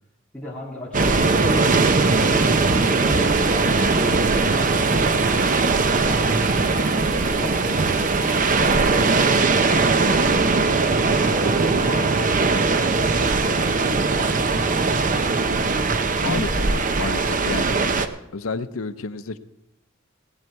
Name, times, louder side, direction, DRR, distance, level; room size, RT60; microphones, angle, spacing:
voice 1, 0.3-2.4 2.9-6.7 7.2-9.6 10.0-14.8, left 1 dB, 5° left, -7 dB, 2.8 m, -37 dB
sound 1, 0.9-18.1, right 3 dB, 40° right, 0.7 m, -20 dB
sound 2, 1.0-9.4, right 3 dB, 80° right, 1.4 m, -36 dB
voice 2, 16.2-17.9 18.3-19.4, left 4 dB, 90° left, 10 dB, 0.7 m, -30 dB
18.0 x 8.9 x 4.6 m, 0.85 s
head